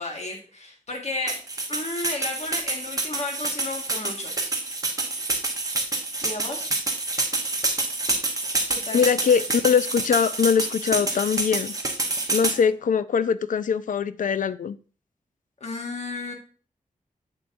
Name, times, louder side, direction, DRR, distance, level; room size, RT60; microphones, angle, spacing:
voice 1, 0.0-1.4 1.7-4.4 6.2-6.6 8.7-9.1 15.6-16.3, left 2 dB, 55° left, 2 dB, 1.7 m, -33 dB
sound 1, 1.3-12.6, right 2 dB, 25° right, 1.0 m, -27 dB
voice 2, 8.9-11.7 12.3-14.8, left 6 dB, 75° left, 15 dB, 0.4 m, -22 dB
6.8 x 6.8 x 2.6 m, 0.38 s
wide cardioid pair, 140°, 14 cm